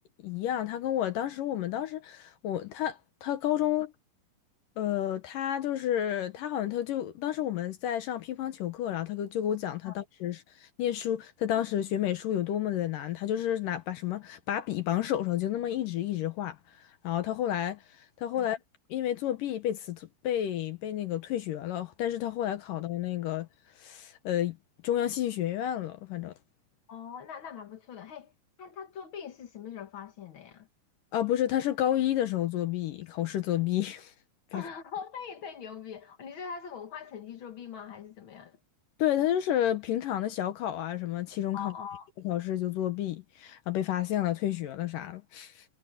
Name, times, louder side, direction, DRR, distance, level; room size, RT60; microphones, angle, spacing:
voice 1, 0.2-3.9 4.8-16.6 17.0-17.8 18.2-18.6 18.9-23.5 23.8-24.6 24.8-26.3 31.1-34.1 34.5-34.6 39.0-41.7 42.2-45.6, left 11 dB, 70° left, 2.2 m, -30 dB
voice 2, 26.9-28.3 28.6-30.7 34.5-38.6 41.5-42.1, left 7 dB, 85° left, 1.1 m, -42 dB
omnidirectional pair, 4.9 m